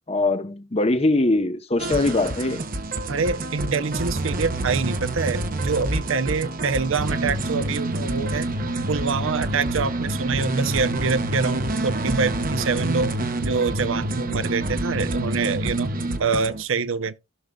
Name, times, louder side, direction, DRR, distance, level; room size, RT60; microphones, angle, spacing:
voice 1, 0.1-2.6, left 2 dB, 30° left, 0.7 m, -22 dB
sound 1, 1.8-16.6, right 1 dB, 40° right, 0.9 m, -27 dB
voice 2, 3.1-8.5 8.8-13.1 13.4-15.9 16.2-17.2, right 5 dB, 70° right, 0.6 m, -25 dB
15.5 x 6.5 x 2.3 m
head